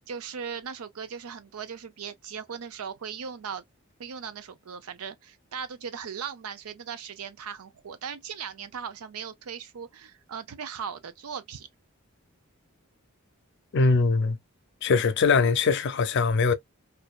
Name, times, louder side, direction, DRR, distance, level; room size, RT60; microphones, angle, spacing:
voice 1, 0.1-3.6 4.0-11.7, right 7 dB, 85° right, 0.5 m, -38 dB
voice 2, 13.7-14.4 14.8-16.5, left 4 dB, 55° left, 0.4 m, -22 dB
2.7 x 2.2 x 2.2 m
head